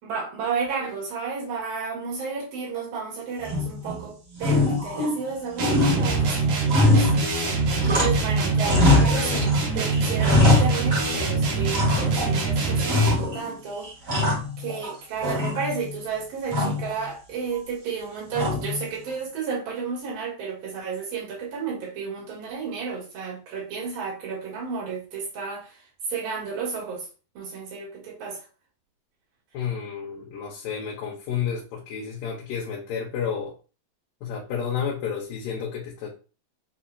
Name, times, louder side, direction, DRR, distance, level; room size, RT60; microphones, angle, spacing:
voice 1, 0.0-7.5 7.8-13.9 14.6-25.8 26.1-27.1 27.4-28.4, right 5 dB, 80° right, 3.6 m, -32 dB
sound 1, 3.4-4.0 4.4-5.3 5.6-8.3 8.6-9.6 9.9-11.3 11.7-12.4 12.9-13.5 13.8-14.9 15.2-15.9 16.5-16.9 18.3-18.8, left 2 dB, 45° right, 0.9 m, -23 dB
sound 2, 5.6-13.3, right 3 dB, 65° right, 2.3 m, -24 dB
voice 2, 29.5-33.5 34.2-36.1, left 7 dB, 75° left, 2.5 m, -31 dB
7.2 x 2.8 x 2.3 m
omnidirectional pair, 4.1 m